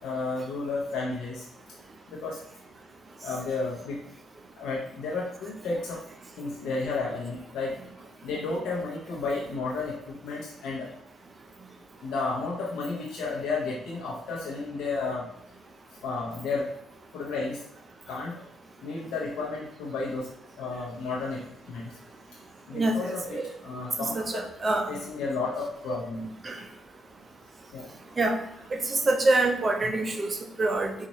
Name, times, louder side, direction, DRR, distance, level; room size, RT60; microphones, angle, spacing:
voice 1, 0.0-1.4 2.1-2.4 3.2-4.0 4.5-6.0 6.4-7.8 8.2-10.9 12.0-15.3 16.0-16.7 17.1-17.6 18.1-18.4 18.8-20.3 20.6-22.0 22.7-24.5 24.9-26.3 27.7-27.9 29.8-29.9, left 3 dB, 80° left, -4 dB, 0.8 m, -32 dB
voice 2, 22.7-23.5 24.0-24.9 26.4-26.6 28.2-28.4 28.7-30.9, right 2 dB, 35° right, 4 dB, 0.6 m, -26 dB
4.1 x 2.5 x 3.0 m, 0.79 s
cardioid pair, 90°, 0 cm